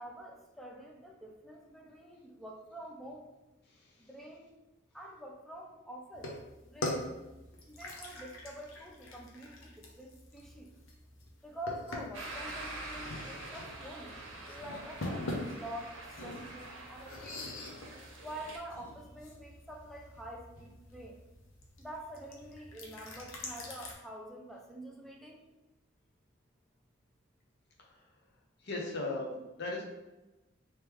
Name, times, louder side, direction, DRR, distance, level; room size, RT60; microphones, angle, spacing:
voice 1, 0.0-3.3 4.0-4.6 4.9-6.3 6.6-7.2 7.7-10.7 11.4-14.2 14.5-17.6 18.2-21.2 21.8-25.4, right 1 dB, ahead, 0 dB, 0.5 m, -47 dB
voice 2, 3.7-4.1 27.8-28.0 28.6-29.8, left 2 dB, 60° left, 0 dB, 0.8 m, -38 dB
sound 1, 6.1-23.9, left 1 dB, 90° left, 0.7 m, -44 dB
sound 2, 12.1-18.6, right 2 dB, 70° right, 0.7 m, -46 dB
3.4 x 3.1 x 3.1 m, 1.0 s
head